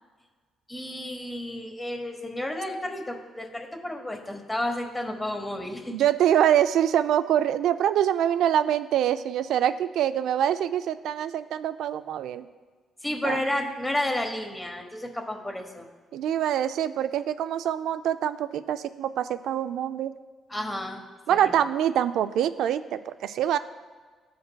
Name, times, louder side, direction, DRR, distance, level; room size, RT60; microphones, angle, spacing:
voice 1, 0.7-5.9 13.0-15.9 20.5-21.0 21.3-21.5, left 1 dB, 15° left, 3 dB, 1.1 m, -31 dB
voice 2, 5.9-12.5 13.2-13.4 16.1-20.1 21.3-23.6, right 10 dB, 80° right, 12 dB, 0.3 m, -25 dB
15.0 x 5.1 x 2.3 m, 1.5 s
cardioid pair, 90°, 0 cm